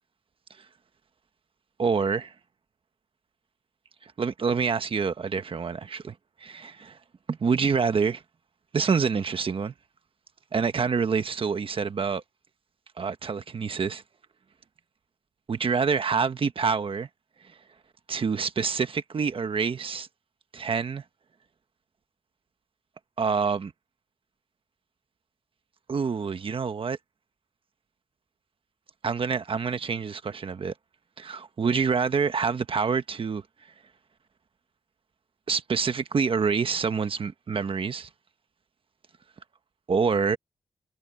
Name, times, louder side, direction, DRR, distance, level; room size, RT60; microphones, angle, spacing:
voice 1, 1.8-2.3 4.0-6.1 6.4-7.0 7.3-8.2 8.7-9.7 10.5-12.2 13.0-14.0 15.5-17.1 18.1-20.1 20.5-21.0 23.2-23.7 25.9-27.0 29.0-30.7 31.2-33.4 35.5-38.1 39.9-40.4, right 5 dB, 50° right, 1.3 m, -26 dB
wide cardioid pair, 120°, 12 cm